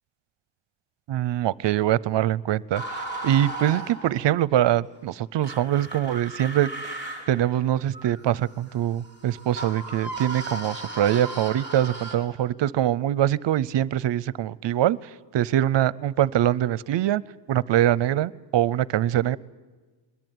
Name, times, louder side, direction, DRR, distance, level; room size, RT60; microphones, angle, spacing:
voice 1, 1.1-17.2 17.5-19.4, right 12 dB, 65° right, 21 dB, 0.7 m, -24 dB
sound 1, 2.7-4.4 5.4-12.2, right 2 dB, 20° left, 4.4 m, -36 dB
22.0 x 22.0 x 9.3 m, 1.3 s
wide cardioid pair, 175°, 47 cm